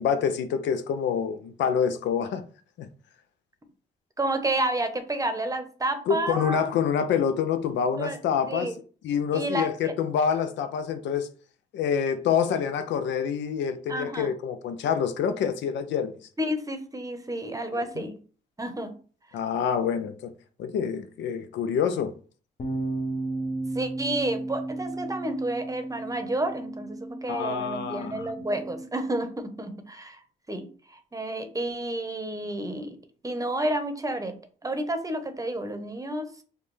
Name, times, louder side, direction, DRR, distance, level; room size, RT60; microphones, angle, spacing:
voice 1, 0.0-2.4 2.8-2.9 6.1-8.7 9.0-11.3 11.7-16.1 17.7-18.0 19.3-20.3 20.6-22.1 27.3-28.3, left 7 dB, 85° left, 0.4 m, -27 dB
voice 2, 4.2-6.6 8.0-8.2 8.5-8.8 9.3-9.9 13.9-14.3 16.4-18.2 18.6-19.0 19.3-19.4 23.7-30.2 30.5-33.0 33.2-34.3 34.6-36.4, right 1 dB, 20° right, 0.8 m, -30 dB
sound 1, 22.6-28.8, right 2 dB, 45° left, 0.8 m, -34 dB
5.0 x 2.2 x 3.1 m
cardioid pair, 65°, 18 cm